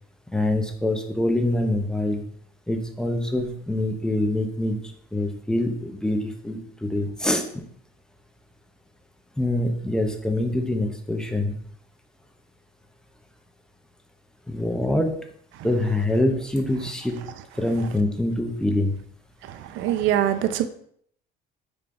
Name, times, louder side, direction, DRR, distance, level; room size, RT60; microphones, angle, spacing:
voice 1, 0.3-2.2 2.7-7.5 9.4-11.5 14.5-15.1 15.6-17.2 17.5-18.9, left 1 dB, 5° left, 4 dB, 0.5 m, -25 dB
voice 2, 19.8-20.7, right 11 dB, 70° right, 10 dB, 0.4 m, -22 dB
4.9 x 3.5 x 2.5 m, 0.64 s
cardioid pair, 120°, 21 cm